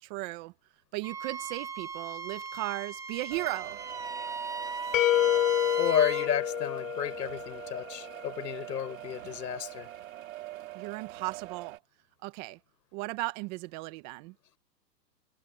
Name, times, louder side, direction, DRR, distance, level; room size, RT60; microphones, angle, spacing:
voice 1, 0.0-0.5 0.9-3.8 10.7-11.8 12.2-12.6 12.9-14.3, right 22 dB, 25° right, 1.1 m, -36 dB
Wind instrument woodwind instrument, 1.0-6.3, right 5 dB, 5° right, 0.9 m, -37 dB
sound 1, 3.3-11.8, right 16 dB, 55° right, 2.1 m, -44 dB
sound 2, 4.9-7.8, left 14 dB, 55° left, 1.0 m, -28 dB
voice 2, 5.8-9.9, left 9 dB, 80° left, 6.9 m, -31 dB
hypercardioid pair, 155°, 49 cm